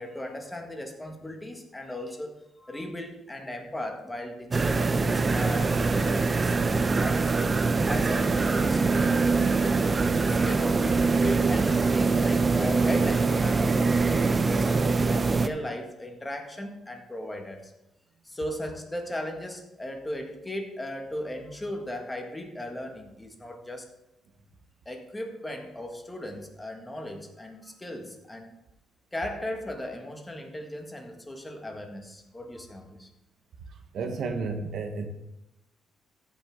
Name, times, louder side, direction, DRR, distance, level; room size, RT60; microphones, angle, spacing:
voice 1, 0.0-7.4 7.8-9.4 10.1-17.7 18.2-23.8 24.9-28.5 29.1-33.1, left 1 dB, 15° left, 3 dB, 1.8 m, -37 dB
sound 1, 4.5-15.5, right 4 dB, 30° right, 0.6 m, -23 dB
voice 2, 33.9-35.1, right 4 dB, 65° right, 6 dB, 1.1 m, -31 dB
15.0 x 6.0 x 3.7 m, 0.86 s
cardioid pair, 90°, 0 cm